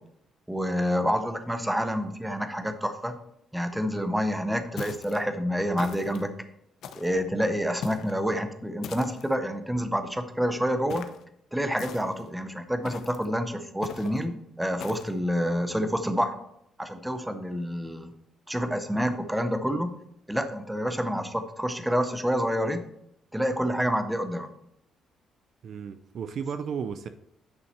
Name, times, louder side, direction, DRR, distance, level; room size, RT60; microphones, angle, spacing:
voice 1, 0.5-3.2 3.5-6.3 6.9-11.0 11.5-14.3 14.6-16.3 16.8-18.1 18.5-20.0 20.3-22.8 23.3-24.5, equal, 5° right, 8 dB, 0.6 m, -28 dB
sound 1, 4.8-5.2 5.8-6.3 6.8-7.2 7.8-8.2 8.8-9.4 10.9-11.2 11.8-12.3 12.8-13.3 13.8-14.2 14.8-15.1, left 7 dB, 60° left, 0.7 m, -41 dB
voice 2, 25.6-27.1, right 6 dB, 45° right, 10 dB, 0.4 m, -34 dB
9.7 x 5.6 x 4.3 m, 0.74 s
cardioid pair, 175°, 0 cm